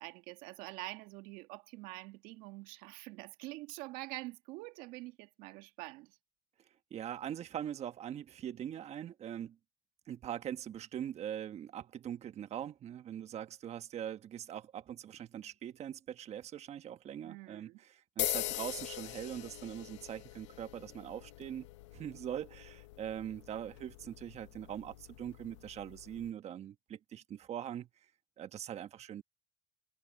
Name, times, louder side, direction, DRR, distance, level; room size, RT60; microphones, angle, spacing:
voice 1, 0.0-6.2 17.2-17.8, right 21 dB, 75° right, 1.7 m, -46 dB
voice 2, 6.6-9.6 10.1-21.7 21.9-28.1 28.4-29.2, right 10 dB, 50° right, 1.1 m, -42 dB
sound 1, 18.2-26.3, left 17 dB, 90° left, 0.8 m, -43 dB
supercardioid pair, 75°, 15 cm